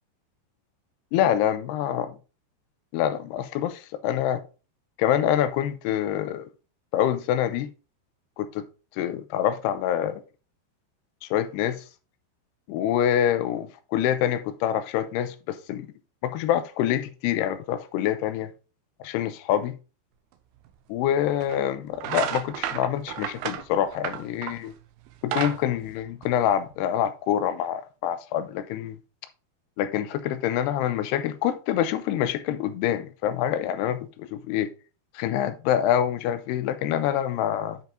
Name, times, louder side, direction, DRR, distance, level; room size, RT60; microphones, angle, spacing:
voice 1, 1.1-2.2 2.9-4.4 5.0-6.5 6.9-7.7 8.4-8.6 9.0-10.2 11.2-11.8 12.7-15.9 16.2-18.5 19.0-19.8 20.9-24.7 25.2-29.0 29.8-34.7 35.1-37.8, left 10 dB, 85° left, 2.7 m, -26 dB
sound 1, 20.7-20.8 21.4-21.6 22.0-24.7 25.1-26.7, right 10 dB, 80° right, 2.5 m, -32 dB
9.1 x 5.2 x 3.5 m
omnidirectional pair, 4.8 m